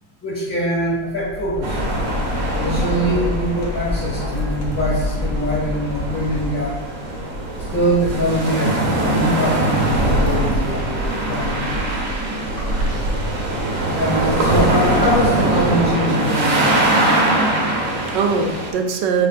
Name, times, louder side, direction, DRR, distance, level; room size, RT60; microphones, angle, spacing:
voice 1, 0.2-1.8 2.6-6.8 7.7-11.9 13.9-16.8, equal, 30° left, -6 dB, 1.6 m, -23 dB
sound 1, 1.1-7.1, left 2 dB, 75° left, 0.6 m, -27 dB
sound 2, 1.6-18.7, right 1 dB, 60° right, 0.9 m, -22 dB
sound 3, 8.3-15.6, right 1 dB, 15° right, 0.6 m, -36 dB
voice 2, 17.2-19.3, right 5 dB, 75° right, 4 dB, 1.2 m, -23 dB
6.1 x 2.8 x 2.5 m, 1.1 s
omnidirectional pair, 2.0 m